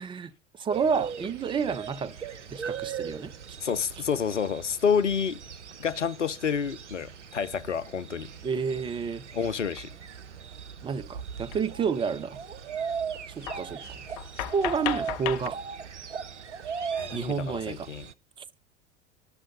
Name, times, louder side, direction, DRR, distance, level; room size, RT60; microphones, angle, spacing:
voice 1, 0.0-2.2 2.5-3.3 8.4-9.2 10.8-12.4 13.3-14.0 14.4-15.6 17.1-17.9 18.4-18.5, right 6 dB, 15° right, 0.5 m, -30 dB
sound 1, 0.7-18.1, right 7 dB, 80° right, 0.7 m, -39 dB
voice 2, 3.6-5.4 5.8-8.3 9.3-9.9 16.9-18.1, left 7 dB, 90° left, 0.5 m, -29 dB
sound 2, 9.8-9.9 11.5-11.6 11.9-12.1 12.8-12.9 13.4-15.5, left 12 dB, 40° left, 0.6 m, -35 dB
11.5 x 6.3 x 5.5 m
figure-of-eight pair, 80°, 35 cm